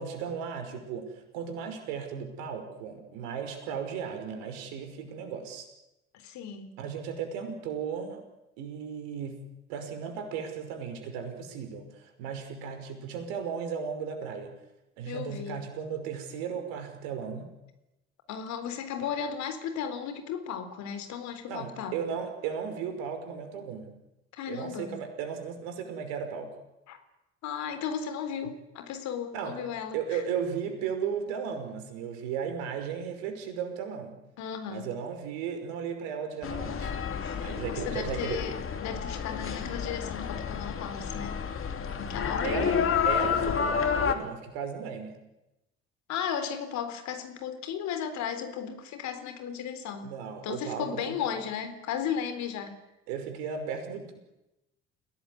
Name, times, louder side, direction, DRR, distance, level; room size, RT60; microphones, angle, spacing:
voice 1, 0.0-5.7 6.8-8.2 8.6-14.5 15.0-17.5 19.0-19.1 21.5-23.9 24.5-26.5 29.3-29.6 29.9-34.2 34.7-37.0 37.4-38.4 42.4-42.8 43.0-45.2 50.0-51.3 53.1-54.2, right 7 dB, 65° right, 7 dB, 5.6 m, -35 dB
voice 2, 6.1-6.7 15.1-15.7 18.3-22.0 24.3-25.0 26.9-27.0 27.4-30.2 34.4-34.9 37.2-41.4 42.0-42.8 46.1-50.1 50.4-52.7, left 8 dB, 55° left, 9 dB, 3.9 m, -35 dB
sound 1, 36.4-44.1, left 7 dB, 40° left, 3.1 m, -30 dB
29.0 x 18.0 x 9.8 m, 0.95 s
figure-of-eight pair, 55°, 33 cm